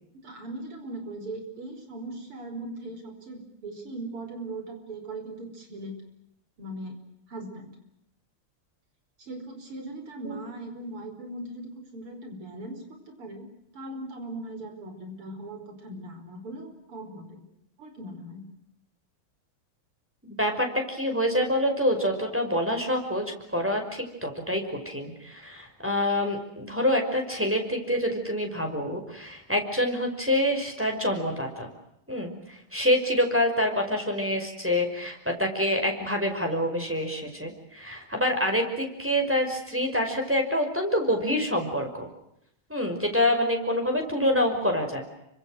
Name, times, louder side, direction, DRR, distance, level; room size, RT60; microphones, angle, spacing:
voice 1, 0.1-6.0 6.6-7.0 7.3-7.7 9.2-13.5 13.7-17.4 17.8-18.5, right 2 dB, 85° right, 5 dB, 5.9 m, -39 dB
voice 2, 20.2-31.7 32.1-42.1 42.7-45.0, left 1 dB, 5° right, 2 dB, 5.5 m, -26 dB
29.5 x 25.5 x 6.4 m, 0.79 s
omnidirectional pair, 2.4 m